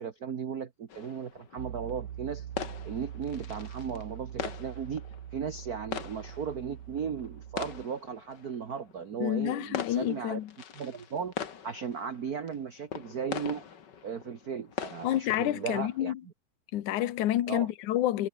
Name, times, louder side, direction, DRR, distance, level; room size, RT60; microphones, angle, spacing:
voice 1, 0.0-2.5 2.8-5.0 5.3-10.4 10.7-11.3 11.6-13.6 14.0-16.3 17.5-17.7, right 7 dB, 50° right, 1.1 m, -36 dB
sound 1, 0.9-16.0, left 7 dB, 45° left, 1.7 m, -42 dB
Piano, 1.6-7.9, right 10 dB, 75° right, 3.1 m, -43 dB
voice 2, 9.2-10.5 15.0-16.2 16.7-18.3, left 13 dB, 75° left, 2.7 m, -29 dB
omnidirectional pair, 3.5 m